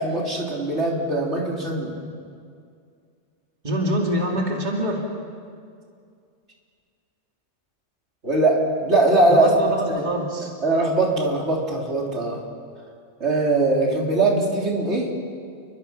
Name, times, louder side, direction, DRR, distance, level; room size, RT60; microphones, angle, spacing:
voice 1, 0.0-1.9 8.2-9.5 9.8-10.0 10.6-12.4 13.2-15.1, right 2 dB, 75° right, -2 dB, 3.8 m, -21 dB
voice 2, 3.6-5.0 9.3-10.5, equal, 40° right, -1 dB, 2.6 m, -25 dB
29.5 x 23.5 x 5.8 m, 2.3 s
omnidirectional pair, 1.2 m